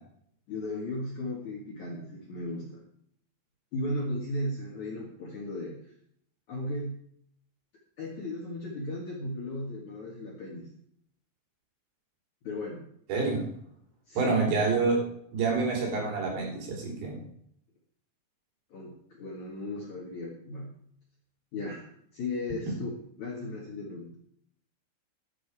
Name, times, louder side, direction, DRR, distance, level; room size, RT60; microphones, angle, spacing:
voice 1, 0.5-2.8 3.7-5.9 6.5-7.0 8.0-10.7 12.4-12.9 14.1-14.4 18.7-20.8 21.5-24.2, left 1 dB, 55° left, -2 dB, 2.4 m, -36 dB
voice 2, 13.1-13.4 14.2-15.0 15.3-17.2, right 4 dB, 65° right, -1 dB, 5.5 m, -27 dB
12.5 x 9.8 x 4.8 m, 0.67 s
omnidirectional pair, 5.6 m